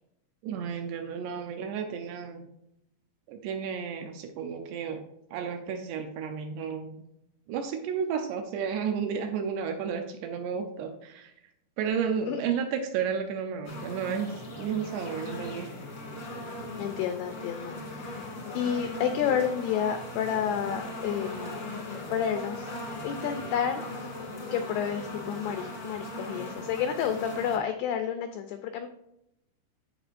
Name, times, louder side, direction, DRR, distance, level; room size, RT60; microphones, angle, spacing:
voice 1, 0.4-2.4 3.3-5.0 5.3-7.0 7.5-11.3 11.8-15.7, right 7 dB, 80° right, 5 dB, 2.6 m, -32 dB
sound 1, 13.6-27.6, left 2 dB, 55° left, 1.1 m, -38 dB
voice 2, 16.8-18.3 18.5-21.6 22.1-22.7 23.0-23.8 24.5-28.9, left 8 dB, 85° left, 7 dB, 2.3 m, -30 dB
14.5 x 4.8 x 2.5 m, 0.84 s
omnidirectional pair, 5.3 m